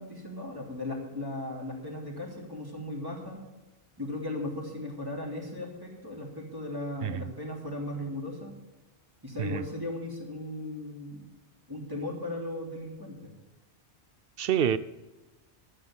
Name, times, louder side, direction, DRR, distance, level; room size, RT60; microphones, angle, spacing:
voice 1, 0.0-3.4 4.0-8.5 9.2-11.3 11.7-13.2, left 1 dB, 20° right, -3 dB, 3.0 m, -37 dB
voice 2, 14.4-14.8, right 9 dB, 60° right, 15 dB, 0.7 m, -27 dB
13.0 x 6.5 x 8.6 m, 1.1 s
omnidirectional pair, 1.2 m